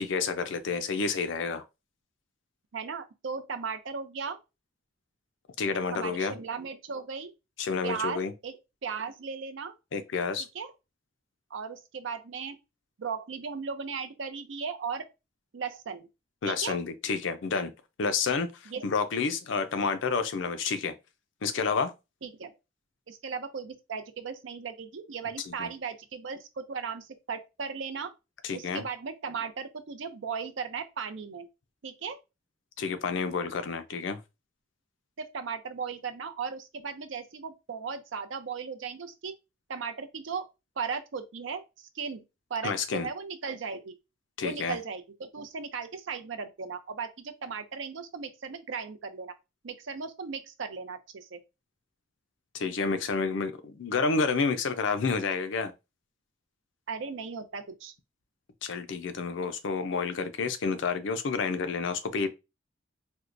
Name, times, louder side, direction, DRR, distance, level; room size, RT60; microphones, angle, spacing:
voice 1, 0.0-1.6 5.6-6.4 7.6-8.3 9.9-10.5 16.4-17.7 18.0-20.9 21.4-21.9 25.6-25.7 28.4-28.8 32.8-34.2 42.6-43.1 44.4-44.8 52.5-55.7 58.6-62.3, left 4 dB, 70° left, 0.5 m, -29 dB
voice 2, 2.7-4.4 5.9-7.3 7.8-9.7 10.5-10.7 11.5-12.6 13.0-15.1 15.5-16.1 16.4-16.8 18.7-18.9 22.2-22.5 23.1-28.1 28.5-31.5 31.8-32.2 35.2-39.3 39.7-40.5 40.8-42.2 42.5-43.9 44.4-49.3 49.6-51.4 56.9-57.9, right 5 dB, 75° right, 0.5 m, -37 dB
4.4 x 2.1 x 2.5 m
head